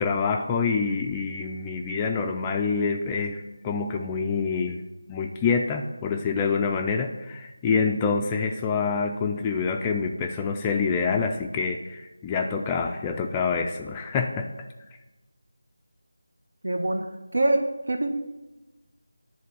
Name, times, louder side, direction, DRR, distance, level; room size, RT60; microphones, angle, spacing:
voice 1, 0.0-4.8 5.1-14.5, left 5 dB, 10° left, 3 dB, 0.3 m, -26 dB
voice 2, 16.6-17.1 17.3-18.1, right 2 dB, 90° right, 5 dB, 1.2 m, -24 dB
10.5 x 3.9 x 7.0 m, 1.1 s
figure-of-eight pair, 175°, 0 cm